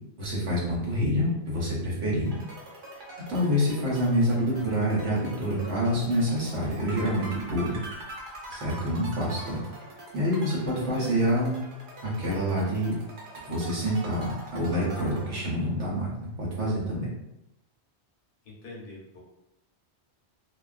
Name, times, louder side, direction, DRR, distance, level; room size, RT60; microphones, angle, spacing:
voice 1, 0.2-2.3 3.3-7.8 8.5-9.6 10.1-11.6 12.0-13.0 13.5-17.1, equal, 80° right, -5 dB, 1.1 m, -27 dB
sound 1, 2.2-15.9, right 1 dB, 55° right, 0.7 m, -44 dB
voice 2, 10.7-11.4 18.4-19.2, left 2 dB, 60° left, -3 dB, 0.8 m, -43 dB
2.3 x 2.3 x 2.3 m, 0.89 s
omnidirectional pair, 1.1 m